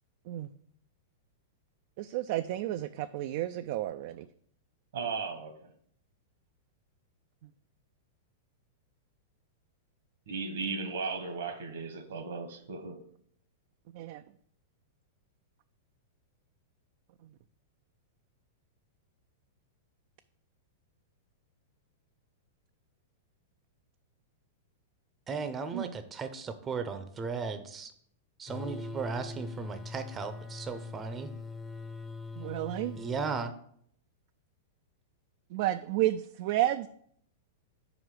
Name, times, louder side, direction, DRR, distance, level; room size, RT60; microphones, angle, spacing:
voice 1, 2.0-4.3 13.9-14.2 25.7-25.9 32.4-33.0 35.5-36.9, right 14 dB, 55° right, 0.3 m, -31 dB
voice 2, 4.9-5.7 10.3-13.0, right 4 dB, 75° right, 1.3 m, -36 dB
voice 3, 25.3-27.9 28.4-31.3 33.0-33.5, right 5 dB, 20° right, 0.6 m, -36 dB
sound 1, 28.5-33.4, left 3 dB, 15° left, 0.7 m, -42 dB
5.2 x 4.9 x 6.3 m
hypercardioid pair, 115°, 0 cm